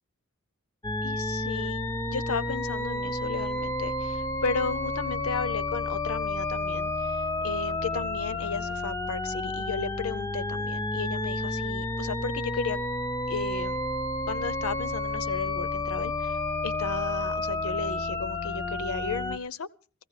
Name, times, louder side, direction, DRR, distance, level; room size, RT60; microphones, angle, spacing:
sound 1, 0.8-19.4, left 2 dB, 15° left, 0.6 m, -31 dB
voice 1, 1.0-12.8 13.3-13.8 14.3-19.7, left 4 dB, 80° left, 0.7 m, -34 dB
15.5 x 15.0 x 4.9 m
head